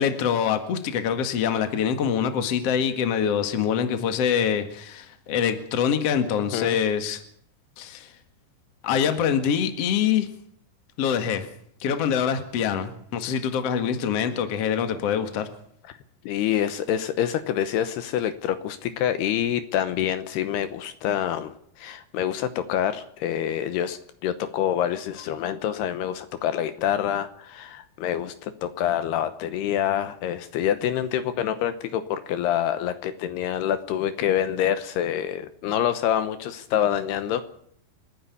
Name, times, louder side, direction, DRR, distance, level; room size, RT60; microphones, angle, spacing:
voice 1, 0.0-7.2 7.8-8.1 8.8-10.3 11.0-11.5 11.8-15.5, left 8 dB, 45° left, 8 dB, 2.3 m, -24 dB
voice 2, 16.2-37.4, left 10 dB, 75° left, 11 dB, 2.9 m, -26 dB
30.0 x 10.5 x 8.5 m, 0.65 s
omnidirectional pair, 5.0 m